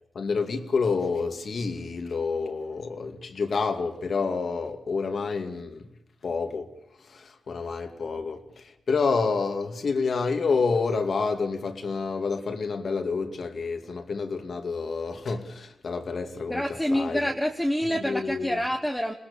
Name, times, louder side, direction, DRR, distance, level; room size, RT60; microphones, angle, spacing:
voice 1, 0.1-5.9 6.2-6.7 7.0-17.3 17.8-18.6, left 4 dB, 60° left, 2.4 m, -29 dB
voice 2, 16.5-19.1, equal, 5° left, 1.3 m, -27 dB
26.5 x 20.5 x 7.1 m
wide cardioid pair, 105°, 0 cm